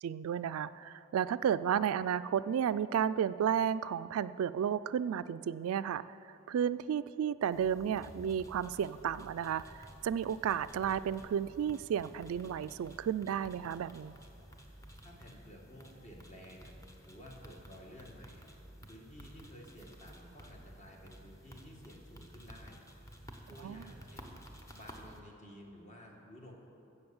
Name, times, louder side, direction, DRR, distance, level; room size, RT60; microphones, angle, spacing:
voice 1, 0.0-6.0 6.3-14.1 23.6-23.8, right 8 dB, 80° right, 16 dB, 0.3 m, -33 dB
sound 1, 7.5-25.2, equal, 15° left, 1.1 m, -53 dB
voice 2, 15.0-16.7 17.0-18.5 18.9-22.8 23.5-24.4 24.7-26.5, equal, 35° left, 0 dB, 1.8 m, -53 dB
16.0 x 7.1 x 7.1 m, 2.9 s
head